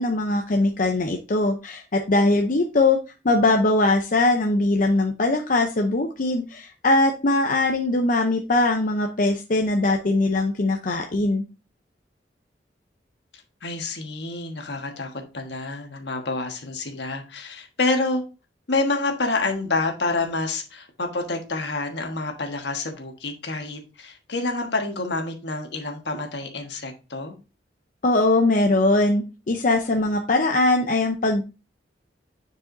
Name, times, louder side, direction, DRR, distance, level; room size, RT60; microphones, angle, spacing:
voice 1, 0.0-3.0 3.2-11.4 28.0-31.4, left 2 dB, 50° left, 0.7 m, -21 dB
voice 2, 13.6-18.2 18.7-27.3, left 3 dB, 70° left, 1.4 m, -28 dB
9.6 x 4.8 x 2.6 m
head